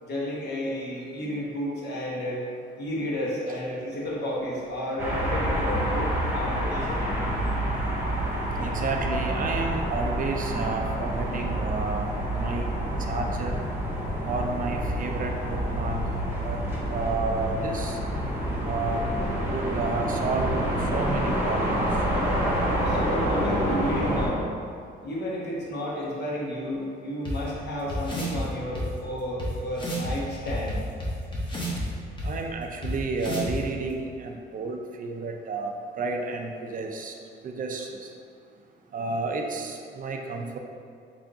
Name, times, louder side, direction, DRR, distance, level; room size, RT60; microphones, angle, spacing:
voice 1, 0.1-2.4 2.8-7.1 22.8-24.5 25.0-30.8, equal, 55° left, -5 dB, 1.0 m, -32 dB
sound 1, 5.0-24.3, equal, 10° right, 0.9 m, -28 dB
voice 2, 8.5-12.7 13.0-13.6 14.3-16.0 16.4-16.6 16.9-18.0 18.6-19.1 19.5-20.5 20.9-21.9 32.2-37.1 37.4-38.1 38.9-40.6, right 3 dB, 45° right, 3 dB, 0.4 m, -31 dB
sound 2, 27.2-27.3 27.9-28.4 28.7-28.8 29.4-29.5 29.8-30.1 30.5-31.8 32.2-32.3 32.8-32.9 33.2-33.6, equal, 25° left, 0.9 m, -31 dB
3.5 x 2.4 x 3.7 m, 2.3 s
cardioid pair, 90°, 20 cm